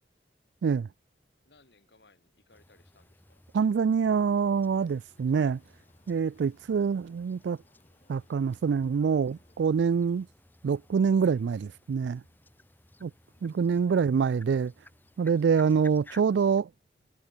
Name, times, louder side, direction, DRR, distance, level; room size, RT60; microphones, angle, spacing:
voice 1, 1.4-3.4 13.3-14.0, left 2 dB, 70° left, 5.6 m, -62 dB
sound 1, 2.5-16.6, left 1 dB, 10° left, 1.2 m, -58 dB
voice 2, 3.5-5.6 6.1-7.6 8.1-10.3 10.6-12.2 13.0-13.1 13.4-14.7 15.2-16.7, right 6 dB, 80° right, 0.3 m, -25 dB
Berlin Ku'damm bells, 4.9-10.3, left 2 dB, 35° left, 3.8 m, -67 dB
head